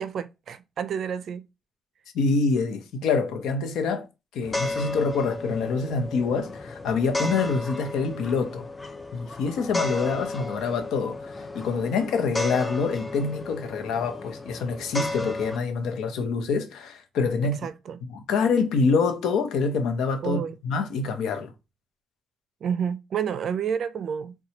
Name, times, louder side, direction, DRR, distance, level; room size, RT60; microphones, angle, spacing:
voice 1, 0.0-1.4 17.4-18.0 20.2-20.6 22.6-24.4, right 7 dB, 60° right, 0.4 m, -30 dB
voice 2, 2.1-4.1 4.3-8.7 9.1-17.6 18.1-21.5, left 4 dB, 85° left, 0.7 m, -26 dB
sound 1, 4.4-15.6, left 2 dB, 20° left, 0.5 m, -33 dB
4.2 x 2.2 x 2.8 m
cardioid pair, 90°, 0 cm